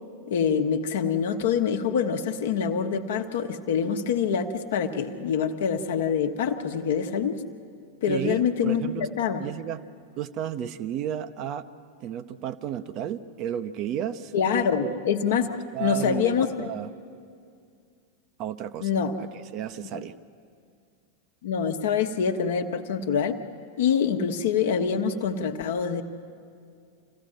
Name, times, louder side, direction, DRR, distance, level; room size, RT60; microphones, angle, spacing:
voice 1, 0.3-7.4 8.0-9.5 14.3-15.5 15.8-16.7 18.8-19.2 19.9-20.0 21.4-23.4 23.8-26.0, left 7 dB, 55° left, 6 dB, 1.1 m, -25 dB
voice 2, 8.1-9.1 9.4-9.8 10.2-11.6 12.0-14.3 14.8-15.0 15.7-16.9 18.4-18.9 19.2-20.1, right 10 dB, 40° right, 11 dB, 0.7 m, -32 dB
26.0 x 15.5 x 7.6 m, 2.3 s
figure-of-eight pair, 90°, 0 cm